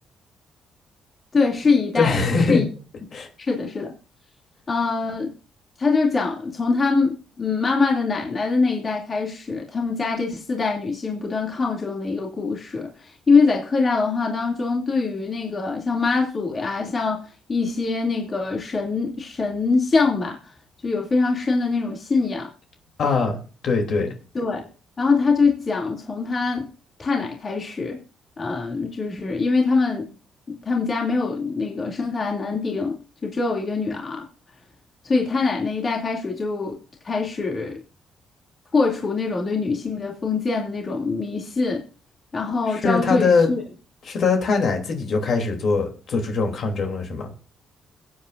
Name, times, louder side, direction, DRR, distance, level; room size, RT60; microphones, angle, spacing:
voice 1, 1.3-2.7 3.4-3.9 4.7-5.3 5.8-20.4 20.8-22.5 24.3-24.7 25.0-26.7 27.0-28.0 28.4-30.1 30.5-33.0 33.2-34.3 35.0-36.7 37.0-37.8 38.7-41.8 42.3-43.6, left 4 dB, 35° left, 2.6 m, -23 dB
voice 2, 2.0-2.6 3.1-3.3 23.0-23.4 23.6-24.1 42.7-43.5 44.0-47.3, left 4 dB, 60° left, 3.0 m, -22 dB
21.5 x 8.3 x 2.6 m
cardioid pair, 90°, 0 cm